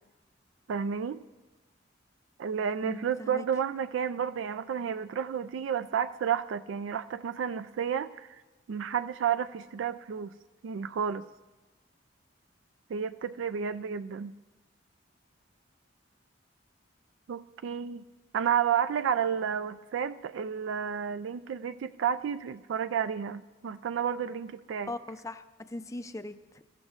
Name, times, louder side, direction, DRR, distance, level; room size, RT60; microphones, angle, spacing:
voice 1, 0.7-1.2 2.4-8.3 8.7-10.3 10.6-11.3 12.9-14.3 17.3-18.0 18.3-24.9, right 7 dB, 90° right, 13 dB, 0.4 m, -31 dB
voice 2, 2.8-3.5 24.9-26.6, left 2 dB, 15° left, 11 dB, 0.4 m, -40 dB
22.0 x 13.5 x 2.5 m, 1.2 s
head